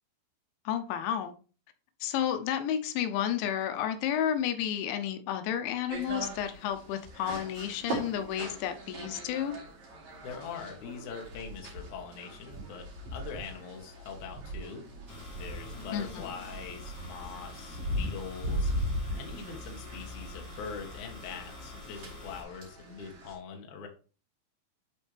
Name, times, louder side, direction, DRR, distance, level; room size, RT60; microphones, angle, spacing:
voice 1, 0.7-1.3 2.0-9.6 15.9-16.3, left 10 dB, 90° left, 8 dB, 3.1 m, -31 dB
sound 1, 5.9-23.4, right 1 dB, 55° right, 4.6 m, -39 dB
voice 2, 10.2-14.8 15.4-18.7 19.2-23.9, left 6 dB, 60° left, 2 dB, 2.2 m, -43 dB
sound 2, 15.1-22.4, left 2 dB, 35° left, 2.2 m, -46 dB
10.5 x 4.4 x 3.4 m, 0.37 s
omnidirectional pair, 5.1 m